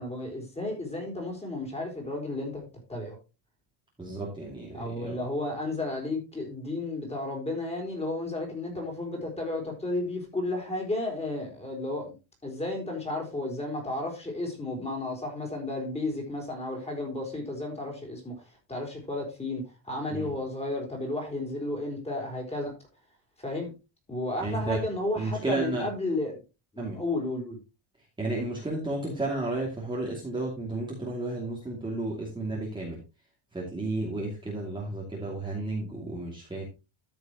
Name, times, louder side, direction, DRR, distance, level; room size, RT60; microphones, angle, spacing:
voice 1, 0.0-3.2 4.7-12.1 12.4-22.7 23.4-23.7 24.1-26.4 26.7-27.6, left 2 dB, 15° left, 4.2 m, -33 dB
voice 2, 4.0-5.2 20.1-20.3 24.4-24.8 25.2-25.8 26.8-27.0 28.2-33.0 33.5-36.6, right 2 dB, 10° right, 2.5 m, -32 dB
13.5 x 6.7 x 3.0 m
cardioid pair, 160°, 49 cm